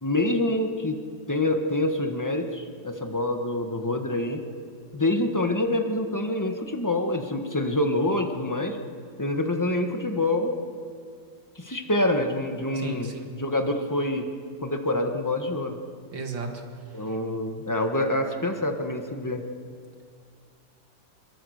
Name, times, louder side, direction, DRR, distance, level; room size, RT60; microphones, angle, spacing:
voice 1, 0.0-1.0 1.3-4.4 4.9-8.8 9.2-10.6 11.5-14.2 14.6-15.8 16.9-19.4, left 1 dB, 10° left, 4 dB, 1.4 m, -26 dB
voice 2, 12.7-13.3 16.1-16.6, right 3 dB, 85° right, 3 dB, 2.9 m, -34 dB
23.5 x 23.0 x 6.6 m, 2.2 s
omnidirectional pair, 2.0 m